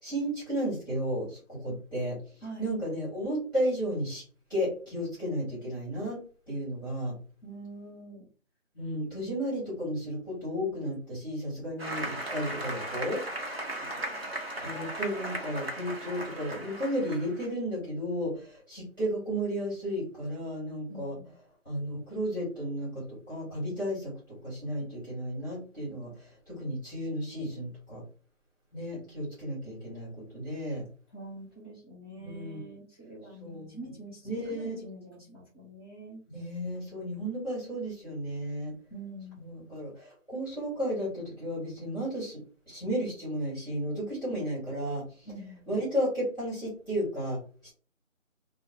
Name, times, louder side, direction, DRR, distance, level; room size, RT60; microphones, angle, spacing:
voice 1, 0.0-2.2 2.6-4.2 4.5-6.2 6.5-7.1 8.7-13.2 14.6-21.1 21.6-28.0 28.7-30.8 32.1-32.7 33.4-33.8 34.2-34.8 36.3-38.7 39.4-42.4 42.7-45.3 45.7-47.7, equal, 15° left, -8 dB, 1.5 m, -33 dB
voice 2, 7.4-8.2 13.8-13.9 20.9-21.3 31.1-36.2 38.9-39.4 45.2-45.8, right 2 dB, 20° right, -9 dB, 1.7 m, -45 dB
Applause, 11.8-17.5, right 1 dB, 50° right, 0.9 m, -37 dB
2.9 x 2.3 x 3.7 m, 0.40 s
figure-of-eight pair, 175°, 40 cm